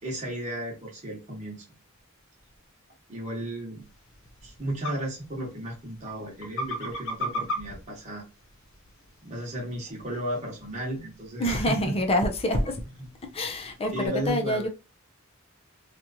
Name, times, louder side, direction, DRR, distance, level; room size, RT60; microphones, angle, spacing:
voice 1, 0.0-1.6 3.1-3.8 4.4-8.2 9.2-11.9 13.0-13.1 13.9-14.7, right 1 dB, 35° right, 1.1 m, -34 dB
sound 1, 3.8-14.1, equal, 65° left, 0.8 m, -40 dB
voice 2, 11.4-12.8 13.3-14.7, left 1 dB, 30° left, 0.6 m, -26 dB
2.9 x 2.4 x 2.6 m
head